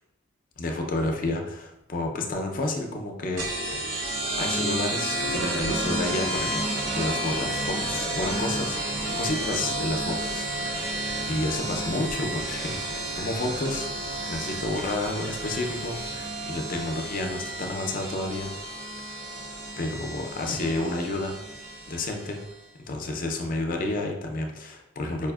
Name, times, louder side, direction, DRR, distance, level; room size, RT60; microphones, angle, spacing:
voice 1, 0.6-3.5 4.4-6.6 7.0-8.8 9.1-11.0 11.3-13.9 14.3-18.5 19.8-21.3 21.9-22.4 22.9-25.3, left 2 dB, 50° left, 3 dB, 0.5 m, -30 dB
sound 1, 2.4-9.7, equal, 50° right, 1.1 m, -44 dB
sound 2, 3.4-22.5, right 1 dB, 85° right, 0.6 m, -31 dB
sound 3, 7.7-16.3, equal, 25° right, 0.7 m, -43 dB
4.8 x 2.5 x 2.3 m, 0.92 s
head